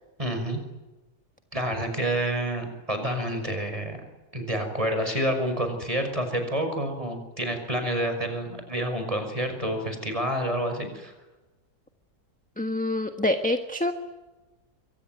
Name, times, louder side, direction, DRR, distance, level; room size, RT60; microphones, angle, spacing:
voice 1, 0.2-0.6 1.5-4.0 4.3-11.1, right 1 dB, 20° right, 6 dB, 5.9 m, -28 dB
voice 2, 12.6-13.9, left 1 dB, 5° left, 6 dB, 1.2 m, -26 dB
27.5 x 23.5 x 9.3 m, 1.1 s
omnidirectional pair, 1.7 m